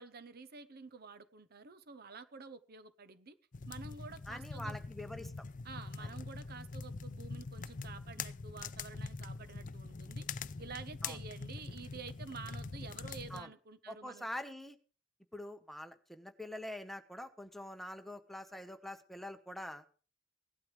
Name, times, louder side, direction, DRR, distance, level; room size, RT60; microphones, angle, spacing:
voice 1, 0.0-3.4 3.7-4.7 5.6-10.3 10.6-14.3, right 4 dB, 55° right, 12 dB, 0.9 m, -50 dB
sound 1, 3.5-13.4, left 4 dB, 45° left, 0.5 m, -44 dB
voice 2, 4.3-5.5 6.0-6.1 11.0-11.2 13.3-13.5 13.9-14.8 15.3-19.8, left 1 dB, ahead, 8 dB, 1.1 m, -45 dB
17.5 x 12.0 x 3.3 m, 0.38 s
head